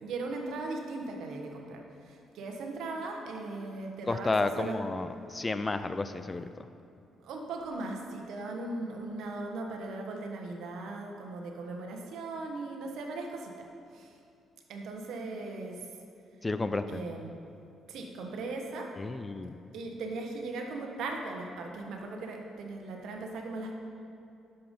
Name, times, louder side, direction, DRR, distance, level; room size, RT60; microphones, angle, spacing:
voice 1, 0.0-4.8 7.2-13.7 13.9-14.1 14.7-15.8 16.9-17.3 17.9-18.9 19.7-23.8, right 3 dB, 80° right, 2 dB, 1.3 m, -38 dB
voice 2, 4.1-6.4 16.4-17.0 19.0-19.5, left 3 dB, 20° left, 11 dB, 0.5 m, -31 dB
11.0 x 7.0 x 5.4 m, 2.6 s
cardioid pair, 90°, 0 cm